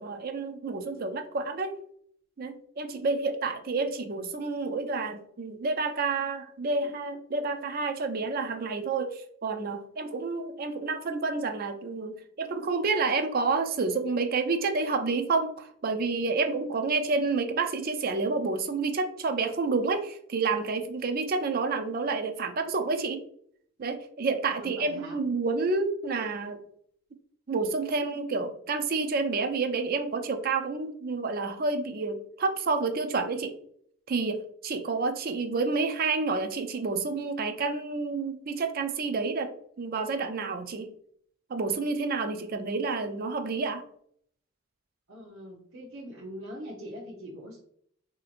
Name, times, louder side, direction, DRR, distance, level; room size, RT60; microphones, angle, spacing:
voice 1, 0.0-1.8 2.4-23.2 23.8-26.6 27.5-33.6 34.1-39.5 39.8-40.9 41.5-43.8, right 4 dB, 45° right, 6 dB, 0.4 m, -29 dB
voice 2, 24.6-25.2 45.1-47.6, equal, 70° right, -5 dB, 0.8 m, -42 dB
4.1 x 2.8 x 2.5 m, 0.65 s
head